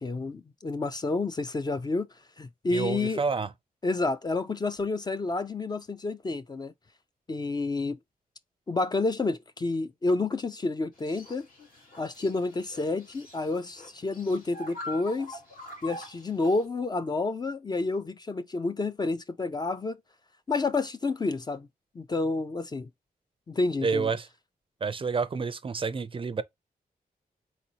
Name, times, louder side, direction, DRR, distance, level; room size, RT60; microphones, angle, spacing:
voice 1, 0.0-2.1 2.4-3.2 3.8-6.7 7.3-8.0 8.7-11.5 12.0-15.4 15.8-20.0 20.5-21.7 22.0-22.9 23.5-24.1, left 3 dB, 25° left, 0.4 m, -29 dB
voice 2, 2.7-3.5 23.8-24.3 24.8-26.4, right 5 dB, 35° right, 0.4 m, -29 dB
sound 1, 10.9-16.6, left 1 dB, 65° left, 2.5 m, -44 dB
4.1 x 4.0 x 2.8 m
wide cardioid pair, 155°, 16 cm